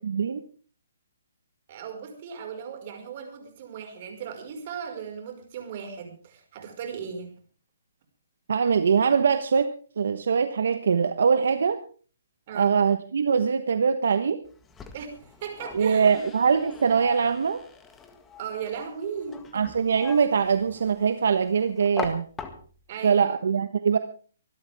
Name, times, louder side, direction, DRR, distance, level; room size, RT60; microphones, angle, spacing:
voice 1, 1.7-7.3 12.5-12.7 14.9-16.3 18.4-19.7 22.9-23.4, right 7 dB, 40° right, 5 dB, 5.2 m, -37 dB
voice 2, 8.5-9.7 10.0-11.8 12.5-14.4 15.7-17.6 19.5-22.3 23.0-24.0, right 6 dB, 70° right, 10 dB, 1.2 m, -22 dB
sound 1, 14.4-23.0, left 6 dB, 10° left, 1.8 m, -42 dB
25.0 x 12.5 x 3.6 m, 0.41 s
hypercardioid pair, 155°, 0 cm